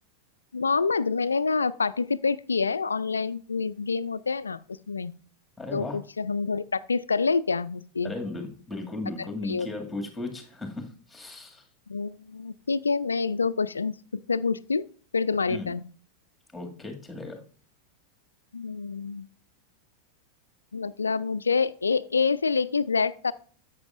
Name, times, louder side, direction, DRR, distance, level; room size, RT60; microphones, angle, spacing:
voice 1, 0.5-5.1 5.7-8.1 9.5-9.7 11.9-13.9 14.3-14.9 15.1-15.8 18.5-19.3 20.7-23.3, left 4 dB, 75° left, 17 dB, 0.4 m, -27 dB
voice 2, 5.6-6.0 8.0-11.7 15.5-15.7 16.5-17.4, left 2 dB, 5° left, 3 dB, 2.1 m, -36 dB
11.0 x 8.2 x 2.5 m, 0.42 s
figure-of-eight pair, 90°, 0 cm